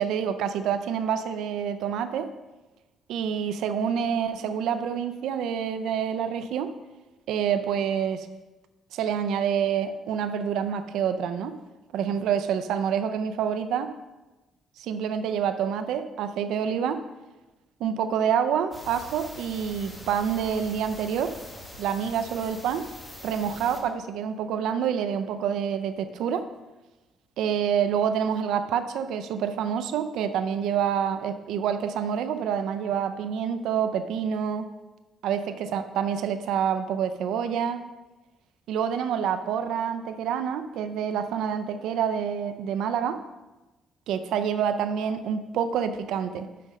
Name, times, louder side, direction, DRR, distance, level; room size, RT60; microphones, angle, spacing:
voice 1, 0.0-2.3 3.1-6.7 7.3-8.3 8.9-11.5 11.9-13.9 14.8-17.0 17.8-21.4 21.8-22.9 23.2-26.5 27.4-34.7 35.2-37.8 38.7-43.2 44.1-46.5, right 8 dB, 85° right, 9 dB, 0.4 m, -27 dB
sound 1, 18.7-23.8, left 1 dB, 15° left, 1.7 m, -43 dB
6.1 x 5.8 x 5.3 m, 1.1 s
cardioid pair, 105°, 0 cm